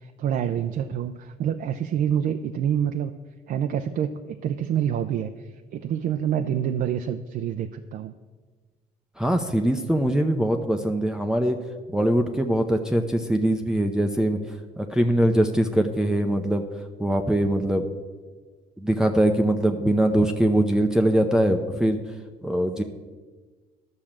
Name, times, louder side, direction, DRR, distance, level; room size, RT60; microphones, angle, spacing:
voice 1, 0.0-3.1 3.5-8.1, right 9 dB, 55° right, 7 dB, 0.6 m, -27 dB
voice 2, 9.2-11.6 11.9-14.4 14.8-16.6 17.0-17.8 18.8-22.0 22.4-22.8, right 1 dB, 5° right, 3 dB, 0.7 m, -22 dB
12.0 x 6.4 x 7.3 m, 1.4 s
cardioid pair, 110°, 17 cm